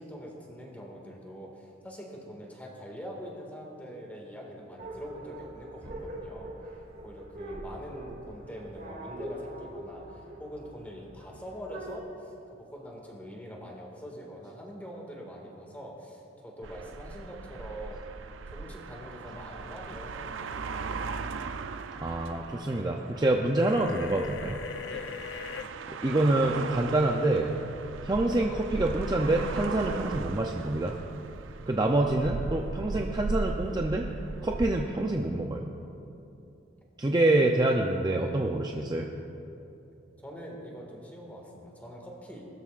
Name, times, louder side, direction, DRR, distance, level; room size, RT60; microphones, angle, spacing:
voice 1, 0.0-6.5 7.0-18.1 18.5-21.1 24.9-25.1 40.2-42.5, equal, 10° left, -1 dB, 1.9 m, -44 dB
sound 1, 4.8-12.0, right 1 dB, 50° right, 2.4 m, -43 dB
Street at night, 16.6-34.7, right 4 dB, 90° right, 0.5 m, -38 dB
voice 2, 22.0-24.6 25.9-27.5 28.0-31.0 31.7-34.1 34.4-35.7 37.0-39.1, right 2 dB, 20° right, 1 dB, 0.5 m, -26 dB
sound 2, 23.6-25.7, left 7 dB, 75° left, 0.5 m, -40 dB
20.0 x 13.0 x 2.5 m, 2.8 s
head